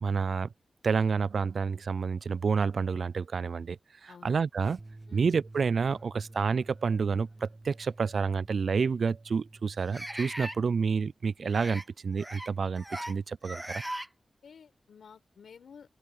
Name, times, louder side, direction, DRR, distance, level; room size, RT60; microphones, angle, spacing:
voice 1, 0.0-0.5 0.8-4.8 5.1-13.8, right 5 dB, 70° right, 0.3 m, -29 dB
sound 1, 4.8-11.0, right 2 dB, 25° right, 2.7 m, -51 dB
sound 2, 5.1-5.2 6.0-6.1 7.7-7.8 9.9-10.6 11.5-11.9 12.2-12.5 12.8-13.1 13.4-14.1, right 1 dB, 10° right, 0.5 m, -38 dB
voice 2, 14.4-16.0, left 6 dB, 85° left, 5.2 m, -52 dB
cardioid pair, 50°, 0 cm